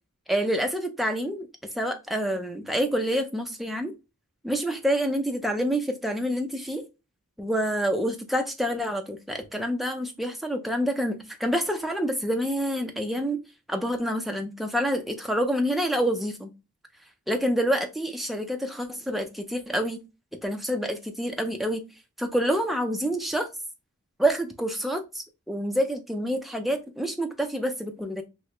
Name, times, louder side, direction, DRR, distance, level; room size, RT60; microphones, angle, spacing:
voice 1, 0.3-1.5 1.8-3.9 4.4-6.9 7.4-13.4 13.7-16.5 17.3-20.0 20.4-21.8 22.2-23.5 24.2-28.2, equal, ahead, 0.3 m, -27 dB
3.0 x 2.7 x 3.1 m
head